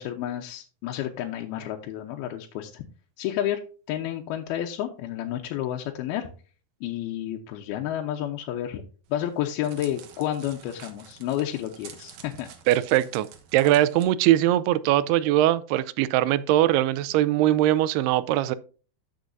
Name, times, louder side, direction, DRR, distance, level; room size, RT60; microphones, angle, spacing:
voice 1, 0.0-2.8 3.2-3.6 3.9-6.3 6.8-8.8 9.1-12.5, left 11 dB, 75° left, 2.6 m, -30 dB
Crackle, 9.1-14.0, right 8 dB, 65° right, 2.4 m, -48 dB
voice 2, 12.7-13.3 13.5-18.6, right 14 dB, 85° right, 2.5 m, -21 dB
13.0 x 6.3 x 2.6 m
omnidirectional pair, 4.7 m